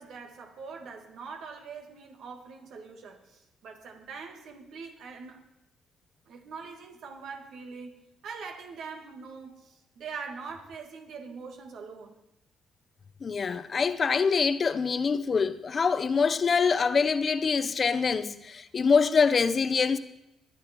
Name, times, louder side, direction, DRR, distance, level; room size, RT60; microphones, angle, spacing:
voice 1, 0.0-5.4 6.3-8.0 8.2-12.2, right 5 dB, 75° right, 2.2 m, -43 dB
voice 2, 13.2-20.0, left 5 dB, 40° left, 0.8 m, -25 dB
22.0 x 8.7 x 4.5 m
cardioid pair, 90°, 0 cm